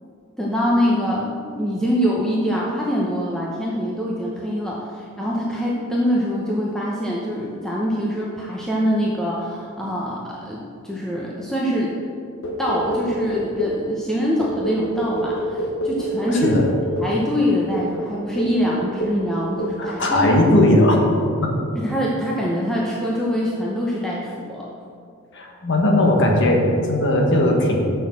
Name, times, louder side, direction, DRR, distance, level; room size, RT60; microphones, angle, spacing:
voice 1, 0.4-11.9 12.6-16.6 17.0-20.2 21.7-24.7, equal, ahead, -5 dB, 0.8 m, -24 dB
sound 1, 12.4-13.9 14.4-17.2 17.7-17.9 18.4-18.6 19.0-19.3 19.6-19.9 20.2-20.5, equal, 75° left, 1.0 m, -27 dB
voice 2, 16.3-16.7 19.8-21.0 21.4-21.6 25.3-27.9, left 1 dB, 60° left, 1 dB, 1.4 m, -18 dB
6.3 x 6.2 x 7.4 m, 2.4 s
head